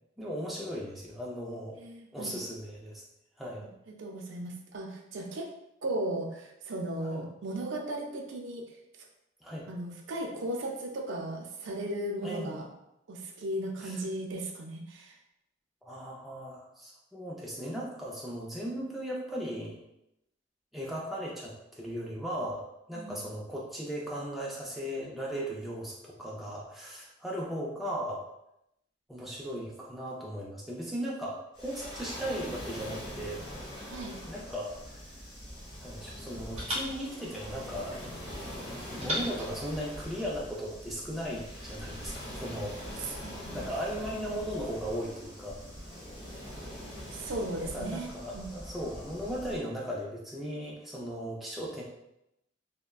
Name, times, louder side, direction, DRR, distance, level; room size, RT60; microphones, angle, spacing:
voice 1, 0.2-1.8 2.1-3.0 3.4-3.7 7.0-7.3 9.4-9.7 12.2-12.6 13.8-14.0 15.8-19.7 20.7-22.6 22.9-28.2 29.1-33.4 34.3-35.0 35.8-38.0 38.9-43.2 43.5-45.6 47.7-51.8, equal, ahead, -5 dB, 0.4 m, -37 dB
voice 2, 1.8-2.3 4.0-5.5 5.8-8.6 9.7-12.7 13.1-15.2 23.0-23.3 33.9-34.2 43.1-43.6 47.1-48.5, right 1 dB, 85° right, 2 dB, 0.4 m, -36 dB
Waves surf, 31.5-49.6, equal, 25° left, 1.1 m, -43 dB
sound 1, 34.8-36.0 36.6-38.2 39.0-40.6, left 1 dB, 30° right, 0.8 m, -40 dB
3.2 x 2.1 x 2.2 m, 0.83 s
head